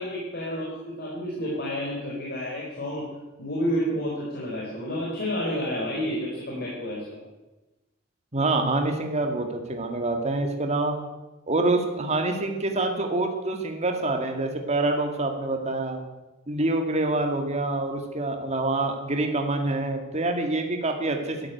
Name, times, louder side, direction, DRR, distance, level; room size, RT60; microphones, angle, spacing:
voice 1, 0.0-3.1 3.4-7.2, equal, 55° left, -4 dB, 4.3 m, -30 dB
voice 2, 8.3-11.0 11.5-16.0 16.5-21.5, right 2 dB, 35° right, 3 dB, 2.1 m, -26 dB
13.0 x 11.5 x 9.3 m, 1.1 s
head